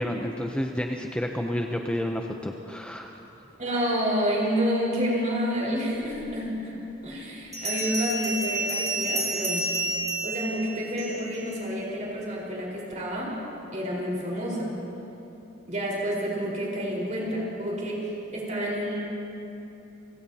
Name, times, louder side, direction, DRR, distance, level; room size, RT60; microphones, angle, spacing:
voice 1, 0.0-3.1, left 1 dB, 5° left, 2 dB, 0.6 m, -30 dB
voice 2, 3.6-6.7 7.0-9.9 10.2-13.4 13.7-14.7 15.7-18.0 18.3-19.0, equal, 40° right, -4 dB, 4.3 m, -29 dB
Bell, 6.3-6.4 7.5-11.4, right 2 dB, 20° right, 3.6 m, -30 dB
29.5 x 16.0 x 2.8 m, 2.9 s
head